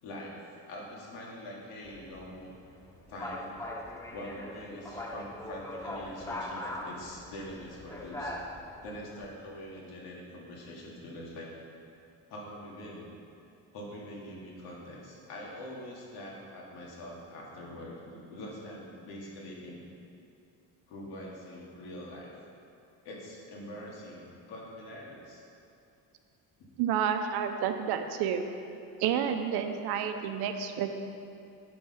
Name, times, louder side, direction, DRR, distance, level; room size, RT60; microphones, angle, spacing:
voice 1, 0.0-2.5 3.1-3.5 4.1-8.4 8.8-11.6 12.3-13.1 13.7-19.8 20.9-22.3 23.0-25.4, left 1 dB, 80° left, -3 dB, 2.3 m, -44 dB
sound 1, 1.8-9.3, left 1 dB, 10° left, 0.5 m, -41 dB
voice 2, 26.8-28.4 29.0-30.9, right 8 dB, 85° right, 7 dB, 0.8 m, -30 dB
9.0 x 6.3 x 5.7 m, 2.5 s
cardioid pair, 155°, 37 cm